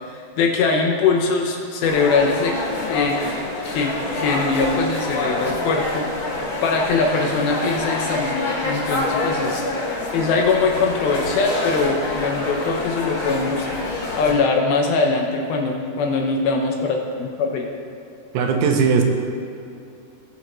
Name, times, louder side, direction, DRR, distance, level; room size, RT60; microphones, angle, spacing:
voice 1, 0.1-2.5 2.8-3.2 3.6-6.1 6.6-9.6 10.1-13.7 14.2-17.7, left 4 dB, 75° left, 1 dB, 2.5 m, -22 dB
sound 1, 1.8-14.3, left 2 dB, 40° left, 2.0 m, -26 dB
voice 2, 18.3-19.0, right 5 dB, 85° right, 3 dB, 3.1 m, -18 dB
18.0 x 7.8 x 3.1 m, 2.7 s
omnidirectional pair, 4.8 m